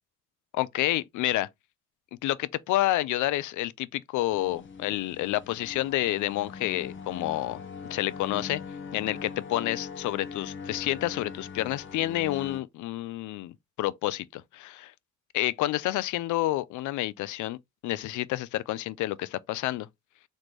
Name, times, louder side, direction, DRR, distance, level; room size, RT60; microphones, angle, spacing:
voice 1, 0.5-1.5 2.2-7.6 7.9-8.6 8.9-14.9 15.3-17.6 17.8-19.9, left 15 dB, 75° left, 0.5 m, -29 dB
sound 1, 4.3-12.6, left 5 dB, 40° left, 0.9 m, -41 dB
4.1 x 3.2 x 3.1 m
cardioid pair, 90°, 30 cm